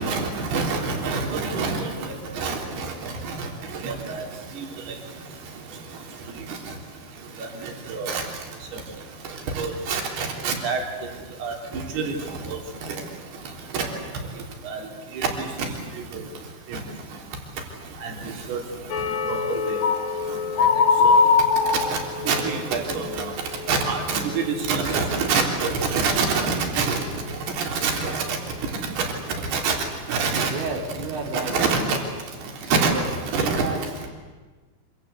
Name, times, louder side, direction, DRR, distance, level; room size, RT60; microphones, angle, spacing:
voice 1, 0.0-3.5 3.8-4.3 4.6-4.7 6.5-6.6 7.4-8.2 9.6-10.8 11.4-12.1 12.4-12.6 13.7-13.9 14.7-14.8 15.2-15.7 16.1-16.2 16.7-16.8 18.0-18.1 18.5-18.6 19.3-19.4 19.7-19.8 21.0-21.2 21.9-22.0 22.3-23.3 23.7-27.0 27.5-28.4 29.0-29.1 29.5-29.8 30.1-30.5 31.5-32.0 32.7-32.9 33.3-33.6, right 4 dB, 65° right, 2 dB, 5.4 m, -26 dB
sound 1, 18.9-24.7 24.9-25.3 25.7-25.9, left 5 dB, 55° left, 3.6 m, -23 dB
voice 2, 30.5-32.0 32.6-34.1, right 3 dB, 80° right, 2 dB, 5.6 m, -32 dB
26.5 x 26.0 x 8.2 m, 1.3 s
omnidirectional pair, 5.1 m